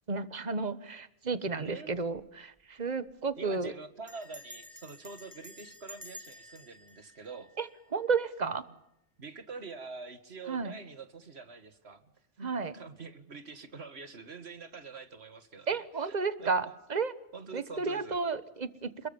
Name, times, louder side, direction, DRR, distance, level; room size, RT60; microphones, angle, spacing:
voice 1, 0.1-3.7 7.6-8.6 10.5-10.8 12.4-12.7 15.7-17.2 17.5-19.1, right 4 dB, 40° right, 13 dB, 1.4 m, -32 dB
voice 2, 1.6-1.9 3.4-7.5 9.2-12.1 12.4-16.7 17.3-18.2, right 4 dB, 60° right, 10 dB, 2.2 m, -45 dB
Bell, 1.9-2.3 2.6-2.7 2.9-3.3 4.1-8.2, equal, 15° right, 2.2 m, -51 dB
28.0 x 22.0 x 7.2 m, 0.81 s
omnidirectional pair, 1.2 m